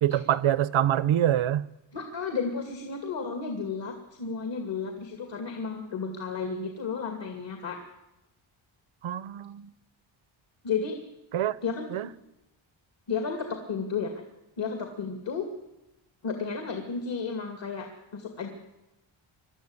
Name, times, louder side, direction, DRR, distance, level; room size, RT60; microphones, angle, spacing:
voice 1, 0.0-1.7 9.0-9.7 11.3-11.6 11.9-12.1, right 11 dB, 75° right, 0.9 m, -25 dB
voice 2, 1.9-7.8 10.6-11.0 11.6-11.8 13.1-14.2 14.6-15.5 16.2-18.5, left 5 dB, 60° left, 2.5 m, -33 dB
22.5 x 13.0 x 9.7 m
wide cardioid pair, 135°, 49 cm